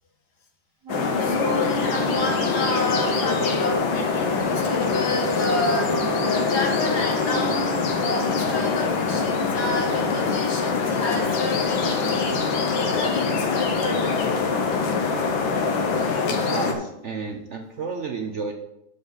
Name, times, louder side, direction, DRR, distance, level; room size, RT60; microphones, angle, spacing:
Wind instrument woodwind instrument, 0.8-8.9, right 3 dB, 50° right, 1.4 m, -34 dB
sound 1, 0.9-16.7, left 4 dB, 75° left, 1.9 m, -24 dB
voice 1, 1.1-14.3, left 2 dB, 55° left, 0 dB, 2.3 m, -30 dB
voice 2, 16.4-18.5, right 4 dB, 70° right, 3 dB, 0.6 m, -31 dB
12.5 x 5.3 x 4.1 m, 0.82 s
omnidirectional pair, 2.2 m